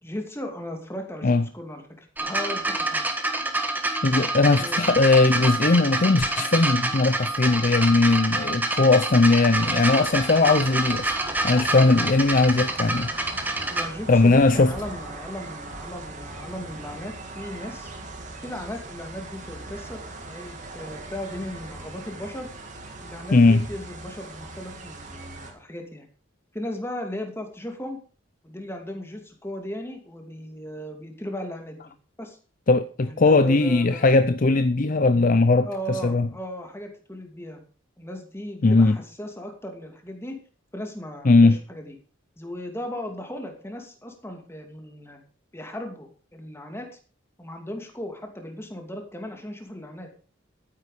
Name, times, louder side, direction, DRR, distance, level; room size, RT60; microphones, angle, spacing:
voice 1, 0.0-3.0 4.4-4.8 13.7-17.9 18.4-20.0 20.3-22.5 23.0-26.1 26.5-28.0 28.4-31.9 32.2-32.4 33.1-34.2 35.6-37.6 38.0-40.4 40.7-41.9 42.4-45.2 45.5-46.9 47.4-50.1, equal, 15° left, 2.5 m, -36 dB
sound 1, 2.2-13.9 14.8-14.9, right 2 dB, 10° right, 1.6 m, -27 dB
voice 2, 4.0-11.2 11.4-13.1 14.1-14.7 23.3-23.7 32.7-36.3 38.6-39.0 41.2-41.6, left 3 dB, 40° left, 0.6 m, -19 dB
sound 2, 9.5-25.5, right 2 dB, 40° right, 2.6 m, -40 dB
13.0 x 9.7 x 5.0 m
head